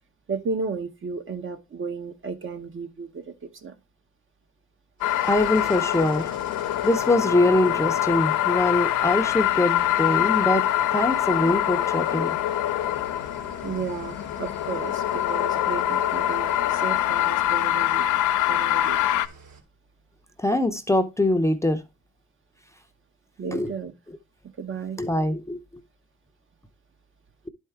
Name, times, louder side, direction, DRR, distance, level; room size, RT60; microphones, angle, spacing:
voice 1, 0.3-3.3 3.6-3.7 13.6-18.1 18.5-19.0 23.4-23.9 24.6-25.0, right 5 dB, 40° right, 0.9 m, -33 dB
sound 1, 5.0-19.3, left 12 dB, 80° left, 0.6 m, -24 dB
Engine starting / Idling, 5.0-19.6, right 4 dB, 70° right, 2.7 m, -47 dB
voice 2, 5.2-6.3 6.8-10.6 10.9-12.4 20.4-21.8 23.5-23.7 25.0-25.6, left 1 dB, 10° left, 0.7 m, -23 dB
11.0 x 4.5 x 3.5 m
cardioid pair, 90°, 30 cm